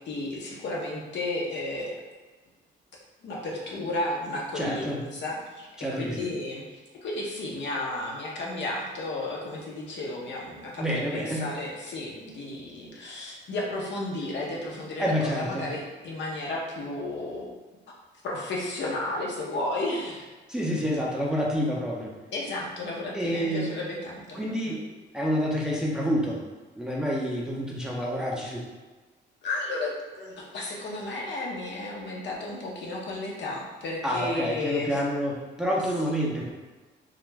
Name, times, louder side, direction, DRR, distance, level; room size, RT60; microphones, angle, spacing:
voice 1, 0.1-2.0 3.2-5.7 5.9-17.5 18.2-20.3 22.3-24.7 29.4-35.0 36.0-36.3, left 2 dB, 65° left, -3 dB, 0.7 m, -33 dB
voice 2, 4.5-5.0 5.8-6.3 10.8-11.5 15.0-15.6 20.5-22.1 23.1-23.7 24.3-24.9 25.1-26.4 26.7-28.6 34.0-36.5, equal, 5° right, -4 dB, 0.5 m, -28 dB
2.3 x 2.1 x 3.2 m, 1.3 s
cardioid pair, 90°, 20 cm